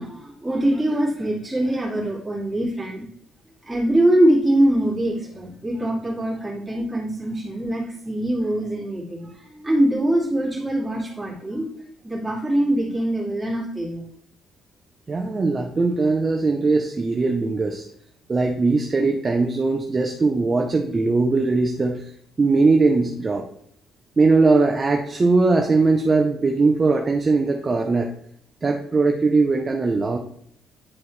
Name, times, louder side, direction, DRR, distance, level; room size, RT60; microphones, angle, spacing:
voice 1, 0.0-3.0 3.7-11.7 12.0-14.0, right 1 dB, 5° right, -6 dB, 2.6 m, -23 dB
voice 2, 15.1-17.9 18.3-22.1 22.4-23.5 24.2-28.1 28.6-30.2, right 3 dB, 25° right, 3 dB, 0.6 m, -20 dB
9.8 x 4.5 x 3.3 m, 0.65 s
cardioid pair, 140°, 0 cm